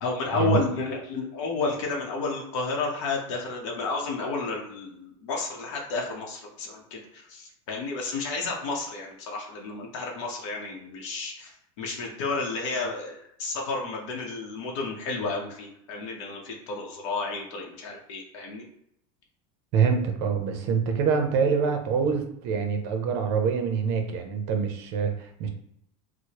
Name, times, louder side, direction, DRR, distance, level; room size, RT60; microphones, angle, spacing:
voice 1, 0.0-18.6, left 3 dB, 65° left, -1 dB, 0.8 m, -31 dB
voice 2, 19.7-25.5, right 6 dB, 40° right, 4 dB, 0.5 m, -25 dB
4.6 x 2.0 x 2.8 m, 0.74 s
supercardioid pair, 180°, 16 cm